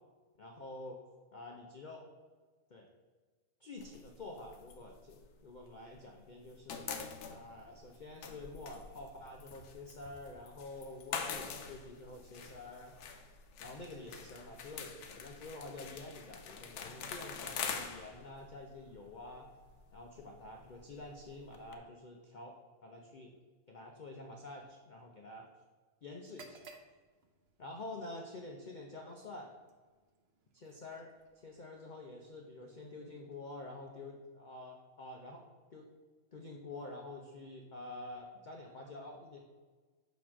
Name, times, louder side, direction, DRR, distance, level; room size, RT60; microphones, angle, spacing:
voice 1, 0.4-1.0 1.3-2.1 2.7-2.9 3.6-6.9 7.3-13.0 13.6-19.5 19.9-23.3 23.7-25.5 26.0-26.6 27.6-29.5 30.5-35.4 35.7-35.9 36.3-39.4, left 2 dB, 60° left, 1 dB, 0.5 m, -48 dB
sound 1, 3.8-6.0 6.3-21.8, left 6 dB, 80° left, 1.2 m, -45 dB
sound 2, 26.2-34.0, right 4 dB, 60° right, 0.7 m, -62 dB
6.5 x 3.1 x 5.9 m, 1.4 s
omnidirectional pair, 1.6 m